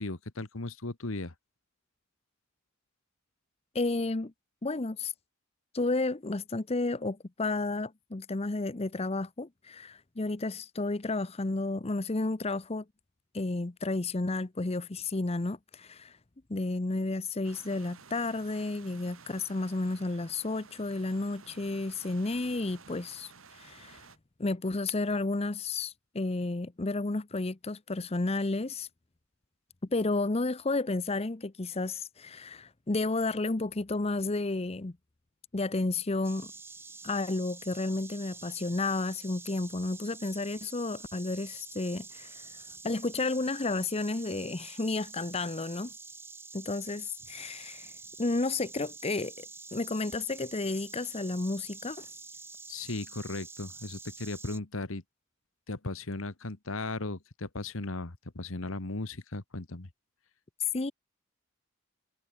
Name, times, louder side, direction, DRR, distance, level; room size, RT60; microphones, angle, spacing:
voice 1, 0.0-1.3 52.7-55.0 55.7-59.9, left 2 dB, 70° left, 1.5 m, -36 dB
voice 2, 3.7-4.3 4.6-5.1 5.7-12.8 13.3-16.2 16.5-24.0 24.4-28.9 29.9-34.9 35.5-36.5 37.0-45.9 46.5-47.9 48.2-49.5 49.7-52.1 60.6-60.9, left 2 dB, 30° left, 0.7 m, -32 dB
sound 1, 17.4-24.2, right 5 dB, 75° right, 3.0 m, -54 dB
Insect, 36.2-54.6, right 4 dB, 10° right, 1.5 m, -47 dB
head